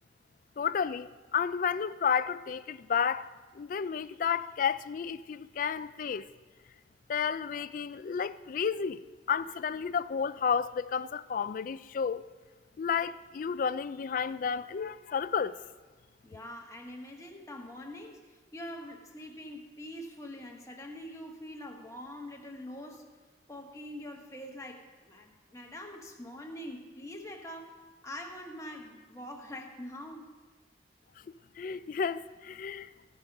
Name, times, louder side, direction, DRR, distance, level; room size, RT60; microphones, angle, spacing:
voice 1, 0.6-3.3 3.5-6.3 7.1-12.2 12.8-15.6 31.6-32.9, left 6 dB, 50° left, 0.3 m, -31 dB
voice 2, 16.2-18.2 18.5-23.1 23.5-27.8 28.0-30.3, left 1 dB, 20° left, 1.1 m, -44 dB
15.5 x 5.2 x 5.8 m
head